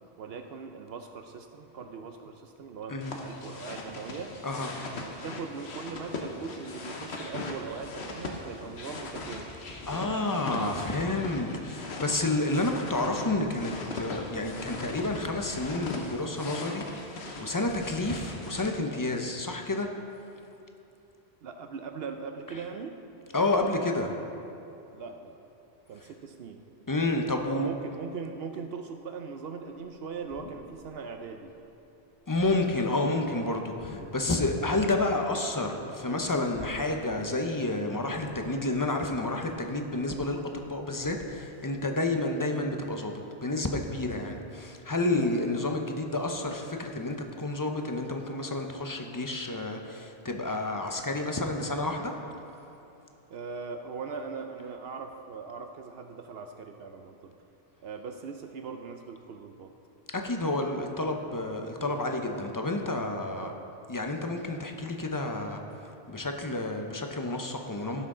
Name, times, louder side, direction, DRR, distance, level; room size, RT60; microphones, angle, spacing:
voice 1, 0.2-4.3 5.2-9.6 21.4-23.0 24.9-25.3 25.9-26.6 27.5-31.5 53.3-57.3 57.8-59.7 63.3-63.7, right 5 dB, 70° right, 5 dB, 0.8 m, -40 dB
sound 1, 3.0-18.7, left 2 dB, 80° left, 1.2 m, -39 dB
voice 2, 9.9-19.9 22.5-22.6 23.3-24.2 26.9-27.7 32.3-52.1 60.1-63.5 63.9-68.1, left 2 dB, 25° left, 3 dB, 0.5 m, -30 dB
sound 2, 30.0-31.1 31.4-31.7 32.2-32.9 33.6-34.4 34.7-35.7 36.0-37.2 37.5-37.6 38.1-38.9 39.3-41.3, left 4 dB, 60° left, 1.0 m, -49 dB
16.0 x 6.1 x 3.7 m, 2.9 s
omnidirectional pair, 1.1 m